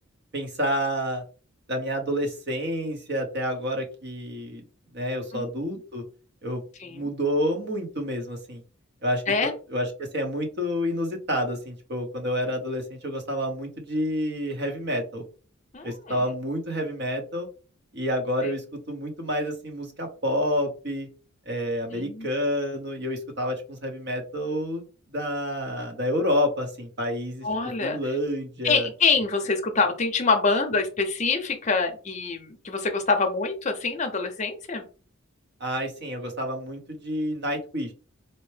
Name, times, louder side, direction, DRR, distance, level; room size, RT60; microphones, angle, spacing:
voice 1, 0.3-1.2 1.7-4.6 4.9-6.0 6.4-6.6 6.9-8.6 9.0-15.2 15.8-17.5 17.9-21.1 21.5-24.9 25.1-27.5 27.8-28.9 35.6-37.9, equal, 50° right, 4 dB, 0.9 m, -29 dB
voice 2, 15.7-16.1 21.9-22.3 27.4-28.0 28.6-34.8, left 4 dB, 35° left, 5 dB, 0.6 m, -25 dB
4.3 x 2.1 x 3.2 m, 0.37 s
head